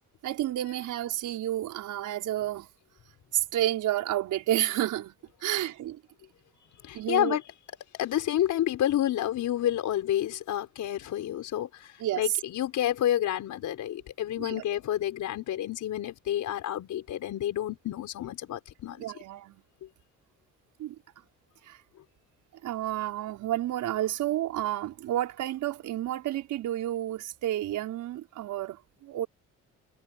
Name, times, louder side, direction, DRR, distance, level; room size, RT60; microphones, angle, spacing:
voice 1, 0.2-2.7 3.3-5.1 5.4-6.0 6.9-7.4 12.0-12.4 14.4-14.6 19.0-19.6 20.8-20.9 21.6-21.8 22.6-29.3, right 13 dB, 85° right, 5.1 m, -30 dB
voice 2, 6.8-7.4 8.0-11.7 12.2-19.0, left 12 dB, 75° left, 5.0 m, -29 dB
cardioid pair, 90°, 30 cm